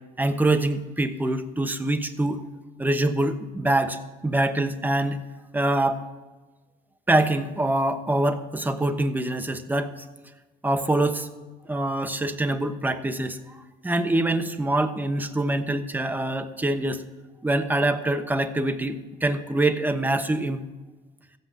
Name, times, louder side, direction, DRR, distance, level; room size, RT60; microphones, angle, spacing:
voice 1, 0.2-2.4 2.8-5.2 5.5-6.0 7.1-9.9 10.6-11.3 11.7-13.6 13.8-17.0 17.4-20.6, right 1 dB, 10° right, 8 dB, 1.0 m, -24 dB
15.0 x 8.1 x 7.5 m, 1.2 s
cardioid pair, 110°, 17 cm